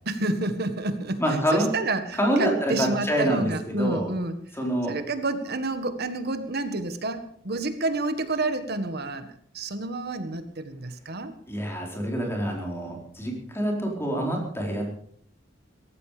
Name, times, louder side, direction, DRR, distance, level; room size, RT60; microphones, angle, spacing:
voice 1, 0.0-4.4 4.9-9.3 9.5-11.3, right 2 dB, 55° right, 9 dB, 1.7 m, -29 dB
voice 2, 1.2-1.7 2.1-4.1 4.6-4.9 11.5-14.9, equal, 15° left, 0 dB, 4.5 m, -26 dB
17.5 x 14.5 x 5.1 m, 0.64 s
head